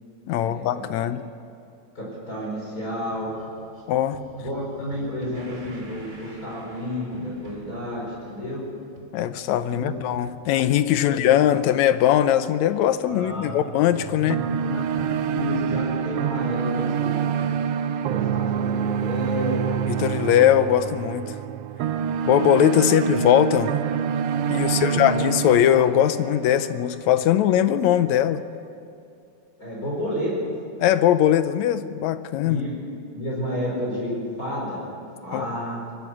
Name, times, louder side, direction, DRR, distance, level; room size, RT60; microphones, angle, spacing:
voice 1, 0.3-1.2 3.9-4.2 9.1-14.4 19.9-21.4 22.3-23.8 24.5-28.5 30.8-32.6 35.3-35.5, left 11 dB, 80° left, 12 dB, 1.9 m, -20 dB
voice 2, 1.9-3.3 4.4-8.6 9.7-10.0 11.0-11.3 13.1-13.6 14.1-17.3 18.0-19.6 22.8-23.0 24.6-25.0 29.6-30.3 32.4-32.7 33.1-34.8 35.2-35.9, equal, 30° left, -6 dB, 5.5 m, -31 dB
sound 1, 3.0-14.4 14.7-17.5, right 4 dB, 25° right, 2.5 m, -46 dB
sound 2, 13.9-27.1, right 8 dB, 75° right, 1.4 m, -26 dB
23.0 x 12.5 x 9.8 m, 2.5 s
omnidirectional pair, 3.4 m